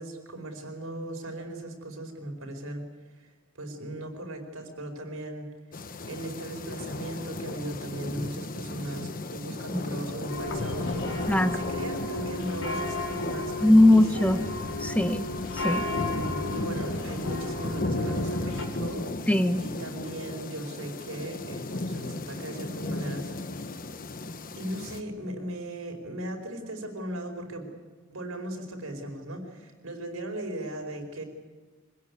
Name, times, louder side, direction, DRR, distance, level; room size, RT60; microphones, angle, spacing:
voice 1, 0.0-2.8 3.2-3.3 3.6-5.5 6.1-14.0 14.3-14.4 15.8-19.1 19.6-23.6 24.6-27.7 28.1-31.2, right 1 dB, 85° right, 4 dB, 4.8 m, -37 dB
sound 1, 5.7-25.0, left 2 dB, 45° left, 1.1 m, -35 dB
sound 2, 10.3-18.6, left 2 dB, 80° left, 4.8 m, -34 dB
voice 2, 13.6-14.4 14.8-15.3 15.5-15.9 19.3-19.6, left 1 dB, 5° left, 8 dB, 1.0 m, -20 dB
25.0 x 18.0 x 9.6 m, 1.4 s
head